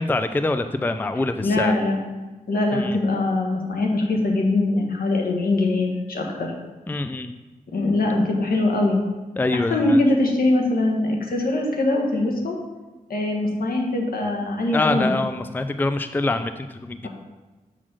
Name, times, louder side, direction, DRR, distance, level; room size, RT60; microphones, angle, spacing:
voice 1, 0.0-1.7 2.7-3.0 6.9-7.3 9.4-10.0 14.7-17.1, left 2 dB, 15° left, 10 dB, 0.4 m, -25 dB
voice 2, 1.4-2.0 2.5-6.5 7.7-9.0 9.5-12.6 13.1-15.1, left 2 dB, 75° left, 0 dB, 1.6 m, -22 dB
7.3 x 4.2 x 6.1 m, 1.2 s
cardioid pair, 60°, 15 cm